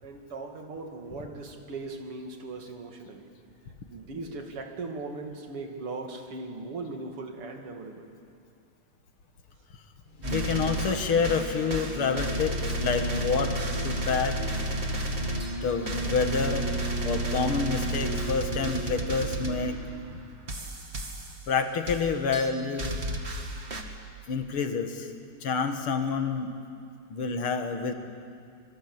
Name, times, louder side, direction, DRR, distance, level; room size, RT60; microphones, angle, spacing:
voice 1, 0.0-3.3 3.9-8.1, right 3 dB, 85° right, 3 dB, 3.3 m, -39 dB
sound 1, 10.0-20.5, right 2 dB, 25° left, 1.4 m, -38 dB
voice 2, 10.2-13.5 13.8-14.4 15.6-16.7 17.0-19.8 20.1-20.2 21.5-23.0 24.3-25.1 25.4-26.5 27.1-27.9, left 5 dB, 75° left, 6 dB, 2.5 m, -28 dB
sound 2, 10.2-19.7 20.5-21.4 21.9-22.0 22.3-23.8, right 1 dB, 30° right, 2.0 m, -32 dB
25.5 x 23.0 x 8.0 m, 2.3 s
omnidirectional pair, 2.4 m